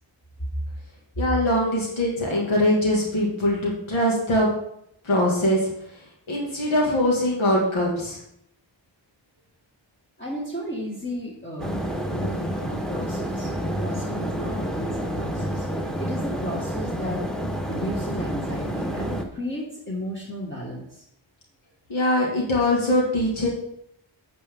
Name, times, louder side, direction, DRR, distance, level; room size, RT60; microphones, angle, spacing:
voice 1, 1.2-4.5 5.0-5.7 6.3-8.2 21.9-23.5, left 1 dB, 90° left, -3 dB, 2.2 m, -22 dB
voice 2, 10.2-11.8 12.0-15.7 16.0-17.2 17.6-21.0, equal, 25° left, -4 dB, 2.0 m, -34 dB
sound 1, 11.6-19.2, equal, ahead, 1.2 m, -29 dB
8.3 x 8.2 x 3.7 m, 0.75 s
cardioid pair, 60°, 46 cm